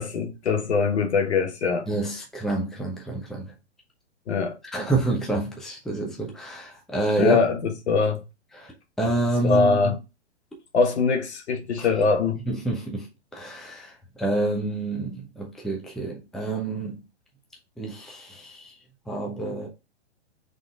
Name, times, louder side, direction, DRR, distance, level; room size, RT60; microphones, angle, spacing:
voice 1, 0.0-1.9 4.3-4.6 7.2-8.2 9.4-9.9 10.7-12.4, left 4 dB, 65° left, 1.3 m, -22 dB
voice 2, 1.9-3.5 4.7-7.4 8.5-8.7 9.0-9.9 11.8-11.9 12.5-13.1 13.3-17.0 17.8-18.7 19.1-19.7, right 2 dB, ahead, 0.7 m, -28 dB
3.9 x 3.6 x 3.7 m
hypercardioid pair, 125°, 35 cm